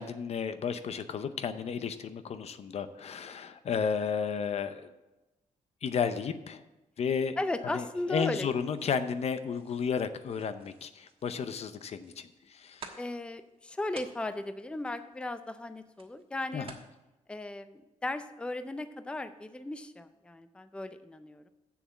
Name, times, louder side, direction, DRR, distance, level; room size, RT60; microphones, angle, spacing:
voice 1, 0.0-4.9 5.8-6.6 7.0-7.3 7.7-7.8 8.1-13.0 16.5-16.7, left 6 dB, 55° left, 11 dB, 0.7 m, -33 dB
voice 2, 7.4-8.5 13.0-16.7 17.3-21.5, left 2 dB, 10° left, 11 dB, 0.5 m, -36 dB
sound 1, 8.6-16.9, right 4 dB, 45° right, 1.3 m, -54 dB
7.3 x 6.9 x 7.0 m, 1.0 s
cardioid pair, 110°, 13 cm